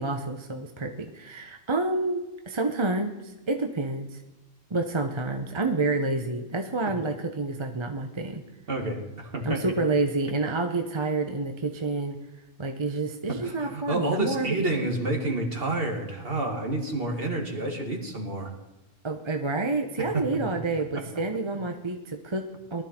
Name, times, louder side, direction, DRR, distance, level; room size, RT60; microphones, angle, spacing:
voice 1, 0.0-2.2 2.5-4.2 4.7-8.4 9.4-12.2 12.6-14.9 19.0-22.8, right 3 dB, 25° right, 5 dB, 0.7 m, -28 dB
voice 2, 8.7-9.6 13.3-18.5 20.0-20.2 20.9-21.0, right 2 dB, 40° right, 3 dB, 2.2 m, -29 dB
19.0 x 12.5 x 4.4 m, 1.0 s
omnidirectional pair, 1.5 m